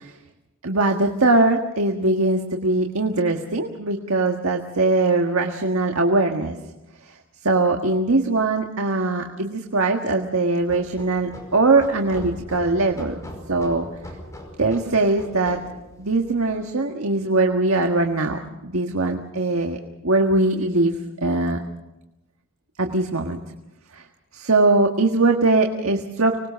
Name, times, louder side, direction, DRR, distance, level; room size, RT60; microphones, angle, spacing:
voice 1, 0.6-6.5 7.4-13.1 13.5-13.8 14.6-15.6 16.0-19.8 20.0-20.9 21.2-21.6 22.8-23.4 23.9-24.0 24.3-26.5, right 2 dB, 80° right, 3 dB, 1.7 m, -21 dB
sound 1, 10.6-16.6, equal, 15° left, 5.2 m, -40 dB
25.5 x 20.5 x 6.3 m, 0.94 s
head